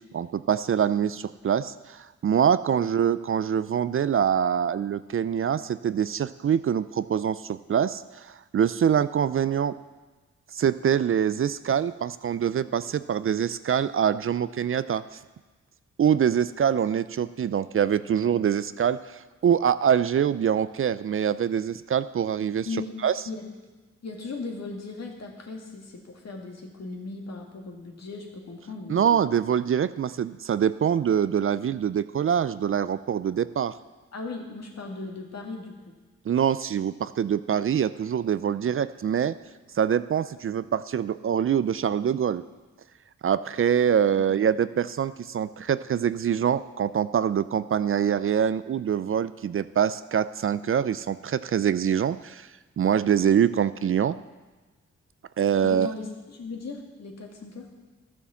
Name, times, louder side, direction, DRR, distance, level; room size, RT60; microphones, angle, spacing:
voice 1, 0.1-9.8 10.5-15.0 16.0-22.7 23.0-23.1 28.9-33.7 36.3-39.4 39.7-42.4 43.2-52.5 52.8-54.2 55.4-55.9, right 8 dB, 45° right, 15 dB, 0.5 m, -24 dB
voice 2, 22.7-23.0 23.3-23.5 24.0-29.4 34.1-35.7 44.2-44.3 55.6-57.7, left 3 dB, 60° left, 1 dB, 2.4 m, -37 dB
12.0 x 7.1 x 7.1 m, 1.2 s
supercardioid pair, 50°, 30 cm